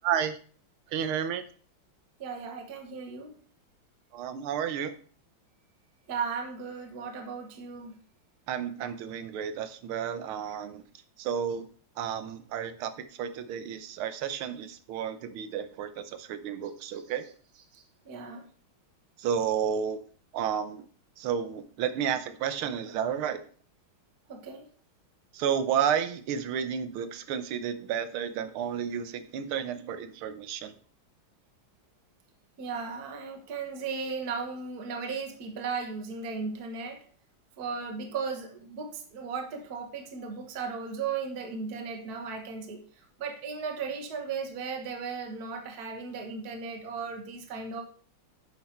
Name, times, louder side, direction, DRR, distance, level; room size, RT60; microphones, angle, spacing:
voice 1, 0.0-0.4 0.9-1.4 4.1-4.9 8.5-10.8 11.2-11.7 12.0-12.9 13.2-17.2 19.2-20.0 20.3-20.8 21.2-23.4 25.3-30.7, right 8 dB, 90° right, 11 dB, 1.7 m, -31 dB
voice 2, 2.2-3.3 6.1-8.0 16.8-17.0 17.7-18.4 24.3-24.6 32.6-37.0 37.6-42.8 43.2-47.8, right 5 dB, 50° right, 4 dB, 1.6 m, -36 dB
9.9 x 5.9 x 4.3 m, 0.44 s
omnidirectional pair, 2.3 m